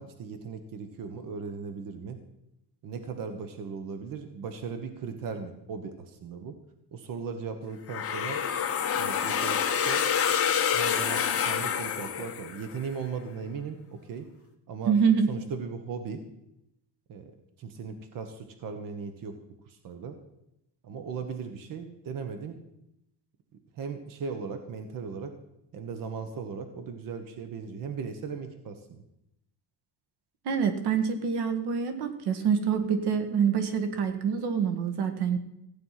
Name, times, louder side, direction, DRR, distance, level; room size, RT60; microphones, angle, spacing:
voice 1, 0.0-2.2 2.8-6.5 6.9-8.4 8.9-10.0 10.7-14.3 14.7-15.0 15.3-16.2 17.1-19.4 19.7-20.2 20.8-22.6 23.7-25.3 25.7-29.0, right 5 dB, 55° right, 7 dB, 1.4 m, -37 dB
sound 1, 7.9-12.8, left 8 dB, 35° left, 1.7 m, -27 dB
voice 2, 14.9-15.3 30.5-35.4, right 6 dB, 75° right, 8 dB, 1.8 m, -26 dB
15.5 x 9.1 x 5.8 m, 0.82 s
cardioid pair, 165°, 40 cm